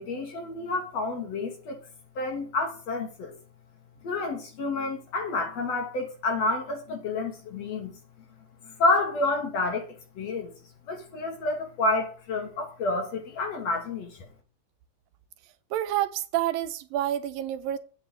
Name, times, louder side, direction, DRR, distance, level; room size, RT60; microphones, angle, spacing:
voice 1, 0.0-1.8 2.2-3.3 4.0-7.9 8.6-10.5 10.9-14.3, left 2 dB, 50° left, 2.7 m, -29 dB
voice 2, 15.7-17.8, right 13 dB, 80° right, 2.4 m, -28 dB
8.6 x 6.0 x 7.5 m
omnidirectional pair, 4.1 m